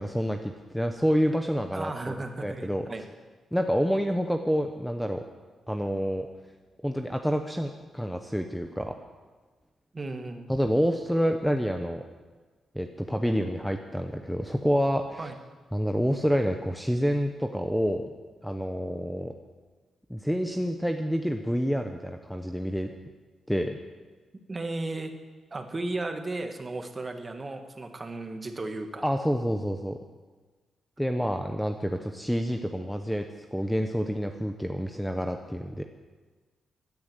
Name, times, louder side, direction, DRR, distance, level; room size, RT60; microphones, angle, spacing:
voice 1, 0.0-2.9 3.5-5.2 5.7-6.3 6.8-9.0 10.5-12.0 12.7-15.3 15.7-18.1 18.4-19.3 20.1-22.9 23.5-23.8 29.0-30.0 31.0-33.2 33.5-35.8, equal, ahead, 5 dB, 0.9 m, -28 dB
voice 2, 1.7-3.1 9.9-10.5 15.2-15.3 24.5-25.1 25.5-29.0, right 2 dB, 25° right, 6 dB, 1.7 m, -35 dB
16.5 x 10.5 x 8.1 m, 1.4 s
cardioid pair, 110°, 0 cm